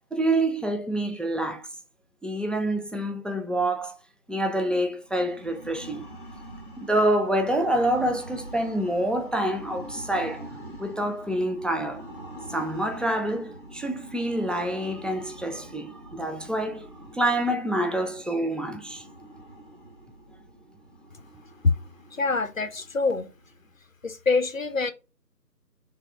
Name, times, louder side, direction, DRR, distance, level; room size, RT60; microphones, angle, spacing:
voice 1, 0.1-1.7 2.2-4.0 4.3-6.1 6.8-10.5 10.8-12.1 12.5-16.9 17.1-19.0, right 1 dB, ahead, 0.4 m, -27 dB
sound 1, 5.0-23.7, right 1 dB, 30° right, 0.8 m, -45 dB
voice 2, 22.1-23.3 24.0-24.9, left 4 dB, 55° left, 0.6 m, -25 dB
3.4 x 3.3 x 4.6 m
figure-of-eight pair, 165°, 49 cm